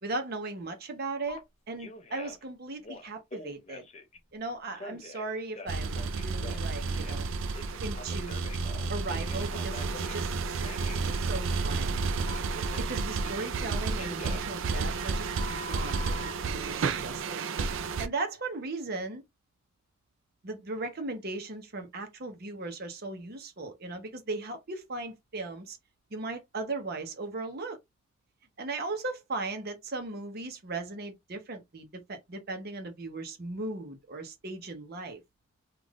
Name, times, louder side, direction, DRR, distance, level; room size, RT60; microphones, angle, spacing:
voice 1, 0.0-3.8 4.3-7.3 7.8-8.4 8.9-10.6 10.9-12.0 12.5-16.0 16.4-17.4 18.0-19.2 20.4-25.8 26.1-27.8 28.6-35.2, right 3 dB, 45° right, 0.8 m, -37 dB
Telephone, 1.3-1.4 1.8-2.4 2.8-4.2 4.8-7.2 7.5-10.3 10.6-11.0 12.3-13.6 14.0-16.3, left 3 dB, 30° left, 0.5 m, -45 dB
sound 1, 5.7-18.1, right 4 dB, 65° right, 0.4 m, -31 dB
3.4 x 2.5 x 2.3 m
head